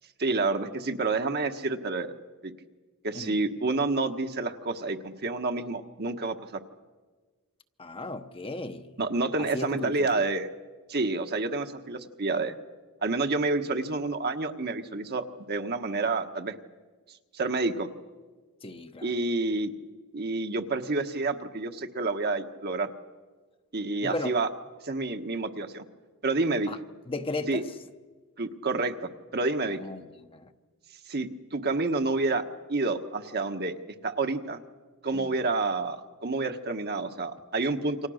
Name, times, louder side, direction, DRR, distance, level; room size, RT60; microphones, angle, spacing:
voice 1, 0.2-2.1 2.4-2.5 3.0-6.6 9.0-10.5 10.9-12.6 13.0-16.5 17.3-17.9 19.0-19.7 20.1-22.9 23.7-24.5 24.8-25.8 26.2-26.7 27.5-27.6 28.4-29.8 31.1-32.4 32.7-33.7 34.0-34.6 35.0-38.1, right 3 dB, 45° right, 1.4 m, -29 dB
voice 2, 7.8-8.9 9.4-10.2 18.6-19.1 24.0-24.3 26.7-26.8 27.1-27.7 29.6-30.5 35.1-35.4, left 2 dB, 25° left, 0.9 m, -36 dB
28.5 x 25.0 x 6.5 m
head